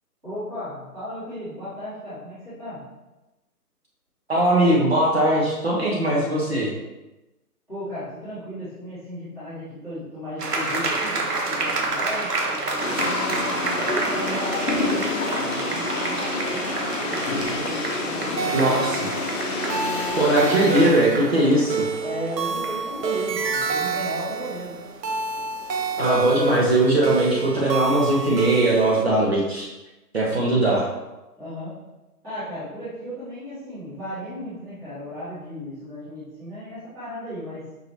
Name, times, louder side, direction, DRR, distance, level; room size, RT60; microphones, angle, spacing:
voice 1, 0.2-2.8 7.7-12.4 12.9-17.3 17.6-18.8 22.0-24.7 31.4-31.7 32.2-37.6, equal, 5° right, -17 dB, 1.0 m, -35 dB
voice 2, 4.3-6.7 18.5-19.1 20.2-21.8 26.0-29.7 30.1-30.8, right 1 dB, 40° right, -5 dB, 0.8 m, -20 dB
sound 1, 10.4-27.0, right 3 dB, 70° right, 1.0 m, -31 dB
sound 2, 12.8-20.9, left 2 dB, 50° left, 0.7 m, -28 dB
sound 3, 18.4-29.0, right 5 dB, 90° right, 0.6 m, -28 dB
5.4 x 2.8 x 3.0 m, 1.0 s
figure-of-eight pair, 155°, 48 cm